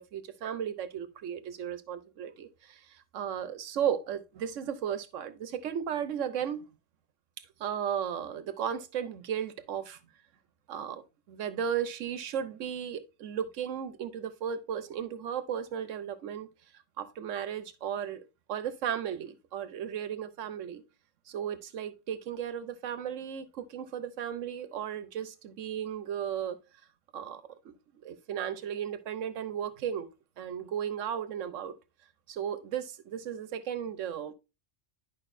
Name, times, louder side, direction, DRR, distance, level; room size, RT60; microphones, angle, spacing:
voice 1, 0.0-6.7 7.6-10.0 10.7-11.0 11.3-16.5 17.0-18.2 18.5-20.8 21.3-26.6 27.1-27.8 28.0-30.1 30.4-31.7 32.3-34.3, right 8 dB, 85° right, 1.1 m, -35 dB
11.0 x 5.2 x 2.6 m
omnidirectional pair, 1.3 m